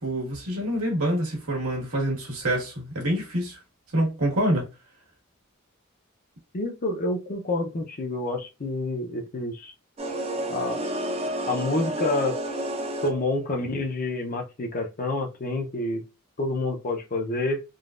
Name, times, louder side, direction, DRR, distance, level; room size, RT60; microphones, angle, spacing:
voice 1, 0.0-3.6 3.9-4.7, right 1 dB, 80° right, 1.6 m, -26 dB
voice 2, 6.5-9.7 10.5-10.8 11.5-12.4 13.0-16.0 16.4-17.6, left 2 dB, 40° left, 0.6 m, -28 dB
sound 1, 10.0-13.4, right 1 dB, 30° right, 0.5 m, -30 dB
3.8 x 2.2 x 2.4 m
head